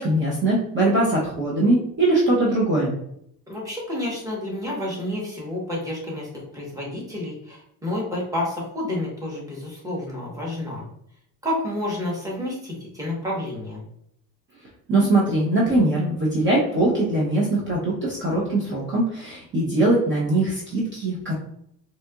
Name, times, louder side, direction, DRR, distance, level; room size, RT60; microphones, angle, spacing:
voice 1, 0.0-2.9 14.9-21.3, right 2 dB, 30° right, -6 dB, 0.8 m, -21 dB
voice 2, 3.5-10.8 11.4-13.8, left 1 dB, 10° right, -4 dB, 1.1 m, -30 dB
4.1 x 2.8 x 2.3 m, 0.72 s
cardioid pair, 155°, 38 cm